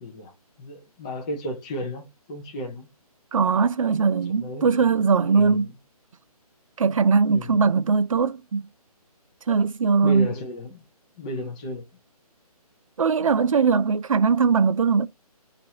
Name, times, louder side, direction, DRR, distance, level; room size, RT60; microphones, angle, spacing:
voice 1, 0.0-2.9 4.3-4.9 5.3-5.7 7.3-7.7 10.0-10.8 11.2-11.8, equal, 10° left, 0.4 m, -34 dB
voice 2, 3.3-5.7 6.8-8.7 9.5-10.3 13.0-15.1, right 5 dB, 60° right, 0.4 m, -20 dB
2.6 x 2.5 x 4.0 m
figure-of-eight pair, 150°, 20 cm